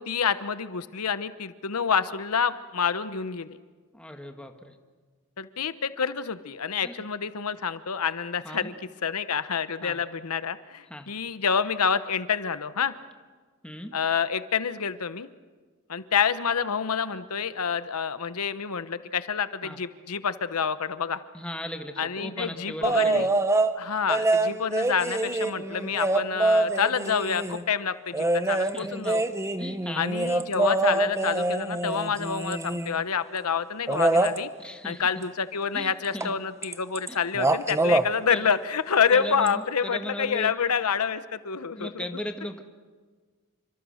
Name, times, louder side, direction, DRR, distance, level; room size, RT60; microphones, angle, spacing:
voice 1, 0.0-3.6 5.4-8.7 9.0-12.9 13.9-15.3 15.9-21.2 22.0-23.3 23.7-29.2 30.0-34.5 34.8-42.0, left 6 dB, 75° left, 13 dB, 0.9 m, -28 dB
voice 2, 3.9-4.7 6.8-6.9 8.4-8.7 9.8-10.0 10.9-11.1 13.6-14.0 19.6-19.8 21.3-23.3 28.7-29.1 29.6-30.1 34.6-35.0 35.7-36.3 37.1-37.2 38.3-38.5 39.1-40.5 41.7-42.6, left 1 dB, 5° left, 5 dB, 1.5 m, -37 dB
sound 1, 22.8-23.7 24.1-27.6 28.1-33.0 33.9-34.4 36.2-36.3 36.6-37.1 37.3-38.1 39.5-39.6, right 2 dB, 15° right, 1.0 m, -25 dB
28.0 x 25.0 x 6.4 m, 1.4 s
head